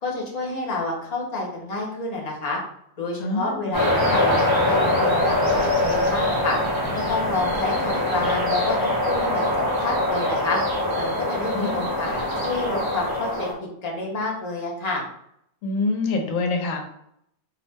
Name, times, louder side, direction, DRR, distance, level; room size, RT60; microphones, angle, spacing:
voice 1, 0.0-2.6 3.0-4.3 4.7-6.6 6.9-9.4 9.8-10.6 11.0-15.0, left 2 dB, 40° left, -2 dB, 0.6 m, -29 dB
voice 2, 3.2-3.7 11.5-11.9 15.6-16.8, left 3 dB, 70° left, 3 dB, 1.0 m, -26 dB
sound 1, 3.7-13.5, left 1 dB, 25° right, 0.5 m, -23 dB
2.7 x 2.0 x 3.3 m, 0.72 s
omnidirectional pair, 1.5 m